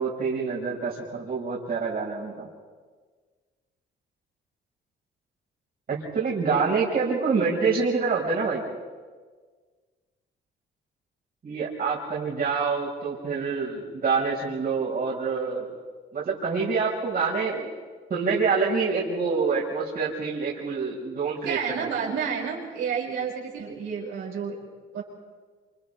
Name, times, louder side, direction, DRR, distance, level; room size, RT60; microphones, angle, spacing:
voice 1, 0.0-2.5 5.9-8.6 11.4-15.7 16.1-17.7 18.1-21.8, right 5 dB, 50° right, -6 dB, 5.1 m, -26 dB
voice 2, 21.4-24.6 24.9-25.0, right 6 dB, 85° right, -4 dB, 6.2 m, -30 dB
28.0 x 27.5 x 3.4 m, 1.5 s
cardioid pair, 90°, 20 cm